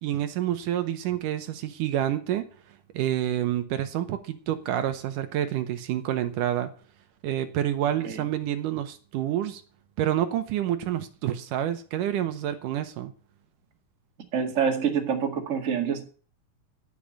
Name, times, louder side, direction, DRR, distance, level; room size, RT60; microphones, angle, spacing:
voice 1, 0.0-2.5 2.9-6.7 7.2-9.6 10.0-13.1, right 11 dB, 75° right, 9 dB, 2.2 m, -28 dB
voice 2, 14.3-16.0, right 7 dB, 35° right, 2 dB, 1.4 m, -26 dB
11.5 x 6.6 x 8.6 m, 0.41 s
omnidirectional pair, 4.3 m